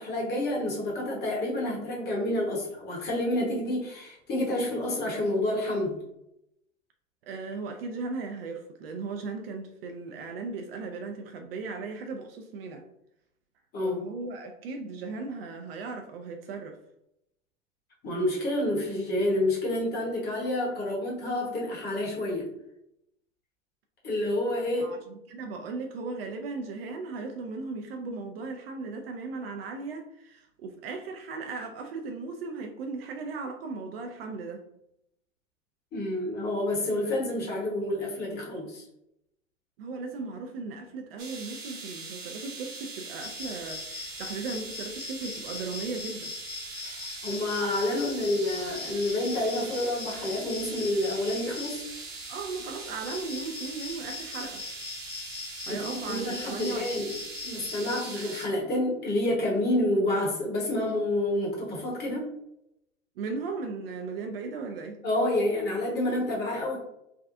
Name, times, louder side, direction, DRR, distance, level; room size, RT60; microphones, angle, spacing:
voice 1, 0.0-6.0 13.7-14.0 18.0-22.5 24.0-25.0 35.9-38.8 46.8-51.8 55.7-57.1 57.4-62.3 65.0-66.8, left 1 dB, 25° left, -2 dB, 1.1 m, -29 dB
voice 2, 7.2-12.8 13.8-16.8 24.8-34.6 39.8-46.3 52.3-54.6 55.7-57.2 63.2-65.0, right 4 dB, 50° right, 4 dB, 0.5 m, -37 dB
sound 1, 41.2-58.5, right 4 dB, 30° right, 0.8 m, -41 dB
sound 2, 43.2-58.0, left 5 dB, 85° left, 0.8 m, -41 dB
3.5 x 2.3 x 2.5 m, 0.80 s
hypercardioid pair, 105°, 39 cm